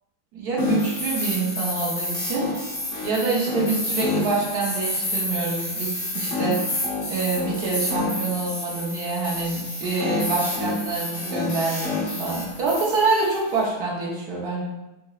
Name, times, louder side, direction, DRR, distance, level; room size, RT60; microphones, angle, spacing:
voice 1, 0.3-2.5 3.0-6.6 7.1-14.6, right 3 dB, 75° right, -4 dB, 1.3 m, -26 dB
sound 1, 0.6-13.6, left 2 dB, 55° left, 1.5 m, -28 dB
4.2 x 2.8 x 2.3 m, 0.99 s
omnidirectional pair, 1.7 m